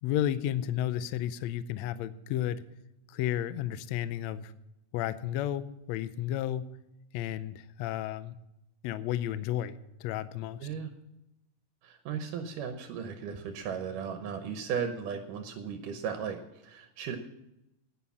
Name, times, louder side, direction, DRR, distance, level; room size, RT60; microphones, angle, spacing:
voice 1, 0.0-2.6 3.1-4.5 4.9-6.7 7.1-8.3 8.8-10.7, left 11 dB, 80° left, 14 dB, 1.6 m, -32 dB
voice 2, 11.8-17.2, right 7 dB, 75° right, 6 dB, 2.5 m, -36 dB
10.5 x 9.7 x 7.1 m, 0.88 s
omnidirectional pair, 3.8 m